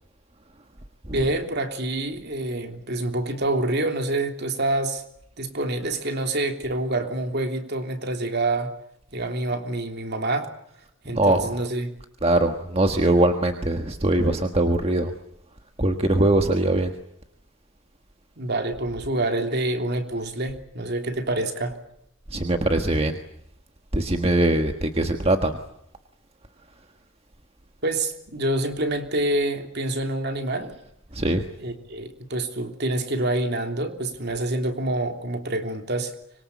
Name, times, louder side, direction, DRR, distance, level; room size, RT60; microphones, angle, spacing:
voice 1, 1.1-5.0 5.4-8.7 9.1-10.5 11.0-11.9 18.4-21.8 27.8-30.7 31.6-36.1, right 2 dB, 50° right, 5 dB, 3.3 m, -27 dB
voice 2, 11.1-11.5 12.2-15.1 15.8-16.9 22.3-23.2 23.9-25.6 26.6-26.7 31.1-31.4, right 1 dB, 30° right, 6 dB, 1.5 m, -22 dB
25.0 x 23.0 x 8.6 m, 0.78 s
head